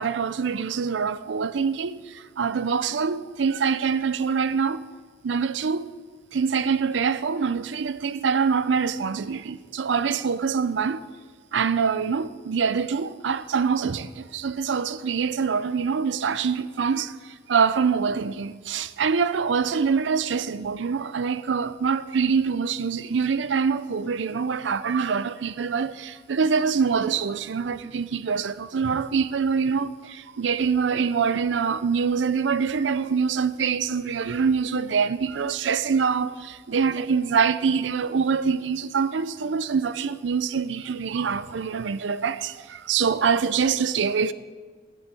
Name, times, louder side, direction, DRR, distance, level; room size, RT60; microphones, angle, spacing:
voice 1, 0.0-4.8 5.2-5.9 6.3-11.0 11.5-44.3, right 6 dB, 70° right, 0.5 m, -25 dB
8.3 x 7.0 x 8.4 m
head